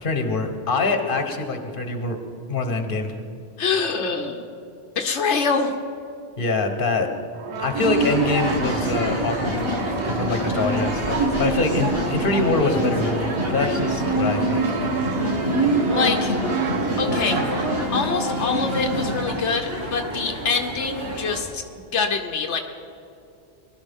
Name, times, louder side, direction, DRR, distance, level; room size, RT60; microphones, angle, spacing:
voice 1, 0.0-2.2 2.5-3.2 6.4-7.1 7.6-9.7 10.0-14.6, left 3 dB, 50° left, 5 dB, 1.4 m, -24 dB
voice 2, 3.6-4.5 5.0-5.7 15.9-16.3 17.0-22.6, left 5 dB, 85° left, 4 dB, 1.1 m, -25 dB
Brass instrument, 7.3-18.1, right 5 dB, 75° right, 1.2 m, -33 dB
sound 1, 7.6-21.4, right 3 dB, 40° right, 0.9 m, -35 dB
sound 2, 7.7-21.4, right 1 dB, 55° right, 2.0 m, -25 dB
20.5 x 12.5 x 3.6 m, 2.7 s
omnidirectional pair, 1.2 m